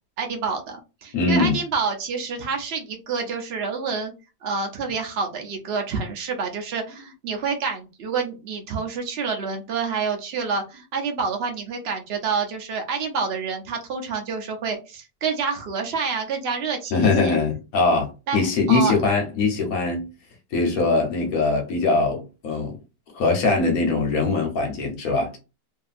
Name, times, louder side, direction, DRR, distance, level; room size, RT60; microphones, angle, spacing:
voice 1, 0.2-4.1 4.4-17.3 18.3-18.9, right 5 dB, 75° right, 0.5 m, -28 dB
voice 2, 1.1-1.6 16.9-20.1 20.5-22.8 23.1-25.4, left 3 dB, 60° left, 1.1 m, -22 dB
2.7 x 2.6 x 2.4 m
omnidirectional pair, 1.9 m